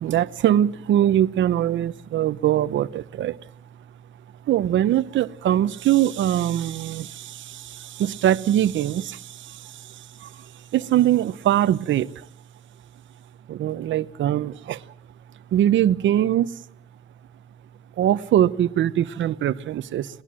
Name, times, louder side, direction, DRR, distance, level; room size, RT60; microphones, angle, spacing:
voice 1, 0.0-3.4 4.5-9.6 10.2-10.3 10.7-12.1 13.5-14.8 15.5-16.5 18.0-20.1, right 11 dB, 70° right, 0.9 m, -22 dB
20.5 x 20.0 x 7.6 m
cardioid pair, 90°, 20 cm